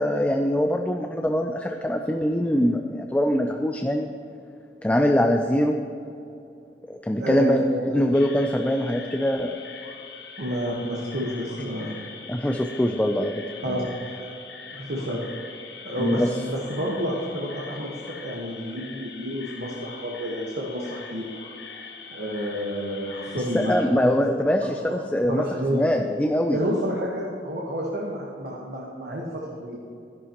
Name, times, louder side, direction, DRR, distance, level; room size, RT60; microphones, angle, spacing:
voice 1, 0.0-4.1 4.8-5.8 6.9-9.6 12.3-13.9 16.0-16.3 23.5-25.4 25.7-26.6, equal, 10° left, 3 dB, 0.4 m, -23 dB
voice 2, 7.2-8.1 10.4-12.0 13.6-13.9 14.7-15.2 15.8-21.2 22.1-23.9 25.3-25.9 26.5-29.8, equal, 65° right, -3 dB, 1.3 m, -30 dB
sound 1, 8.1-23.9, left 5 dB, 70° left, 1.1 m, -42 dB
13.0 x 11.0 x 3.0 m, 2.7 s
head